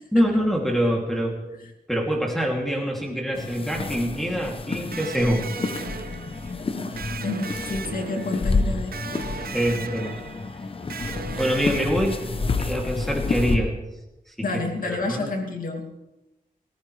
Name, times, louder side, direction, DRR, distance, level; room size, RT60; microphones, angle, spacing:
voice 1, 0.1-1.4 1.9-5.5 9.5-10.2 11.4-12.2 12.6-13.7 14.4-14.5 14.8-15.3, equal, ahead, -1 dB, 2.6 m, -24 dB
sound 1, 3.3-13.6, left 3 dB, 40° left, 0.9 m, -29 dB
Electric guitar, 4.9-12.6, right 6 dB, 85° right, 0.7 m, -38 dB
voice 2, 6.6-9.0 9.4-9.6 14.4-15.9, left 3 dB, 65° left, 3 dB, 2.5 m, -30 dB
30.0 x 15.0 x 3.3 m, 0.97 s
wide cardioid pair, 180°, 15 cm